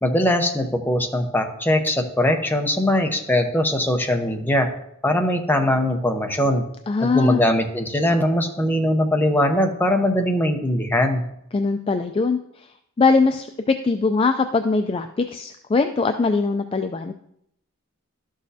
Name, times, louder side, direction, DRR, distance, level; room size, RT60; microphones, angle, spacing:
voice 1, 0.0-4.7 5.0-6.6 7.0-11.3, left 1 dB, 10° left, 3 dB, 0.8 m, -21 dB
voice 2, 6.9-7.5 11.5-12.4 13.0-17.1, left 4 dB, 25° left, 7 dB, 0.3 m, -21 dB
12.0 x 6.3 x 2.7 m, 0.73 s
head